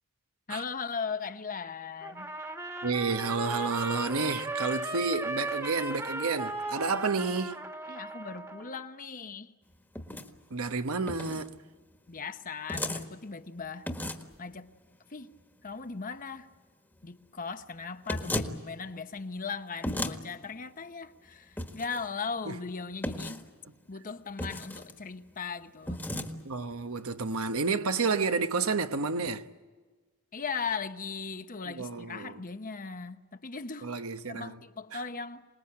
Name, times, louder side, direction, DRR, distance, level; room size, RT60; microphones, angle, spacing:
voice 1, 0.5-2.3 7.9-9.5 12.1-13.9 14.4-14.7 15.1-15.3 15.6-16.5 17.0-23.5 23.9-26.1 30.3-33.9 34.3-35.5, left 5 dB, 40° left, 0.9 m, -38 dB
Trumpet, 2.0-8.8, right 2 dB, 15° right, 1.6 m, -36 dB
voice 2, 2.8-7.6 10.5-11.6 22.5-22.6 26.4-29.5 31.7-32.4 33.8-34.6 34.9-35.0, right 4 dB, 75° right, 1.1 m, -30 dB
sound 1, 9.9-10.3 11.1-11.5 12.7-13.0 13.9-14.3 18.1-18.5 19.8-20.2 21.6-22.0 23.0-23.4 24.4-24.9 25.9-26.3, left 1 dB, 10° left, 1.6 m, -34 dB
26.0 x 20.0 x 8.8 m
head